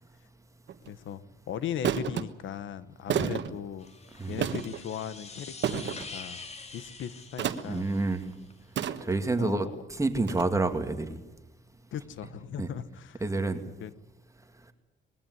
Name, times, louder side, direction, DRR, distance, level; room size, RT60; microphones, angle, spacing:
sound 1, 0.7-0.9 1.8-2.2 3.1-3.5 4.4-4.8 5.6-6.1 7.4-7.8 8.8-9.3 10.3-10.4, right 9 dB, 65° right, 1.4 m, -30 dB
voice 1, 0.9-3.9 4.3-6.4 6.7-7.9 9.4-9.7 11.9-13.2 13.8-13.9, left 9 dB, 75° left, 15 dB, 1.4 m, -38 dB
sound 2, 3.8-8.5, left 3 dB, 35° left, 2.3 m, -45 dB
voice 2, 7.7-8.3 9.0-11.2 12.6-12.7 13.2-13.6, right 2 dB, 15° right, 6 dB, 2.4 m, -28 dB
21.0 x 16.0 x 9.9 m, 1.0 s
cardioid pair, 90°, 20 cm